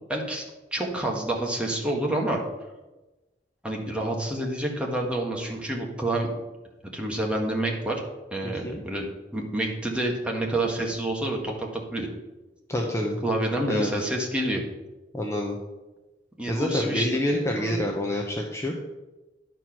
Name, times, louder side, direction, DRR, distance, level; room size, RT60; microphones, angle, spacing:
voice 1, 0.1-0.4 0.7-2.4 3.6-6.3 6.9-8.0 8.3-9.1 9.3-12.1 13.2-14.6 16.4-17.1 17.6-17.9, right 1 dB, 5° right, -1 dB, 1.5 m, -28 dB
voice 2, 8.4-8.8 12.7-13.2 13.7-14.1 15.1-15.6 16.5-18.8, left 1 dB, 15° left, 0 dB, 0.8 m, -27 dB
11.0 x 4.6 x 5.9 m, 1.1 s
head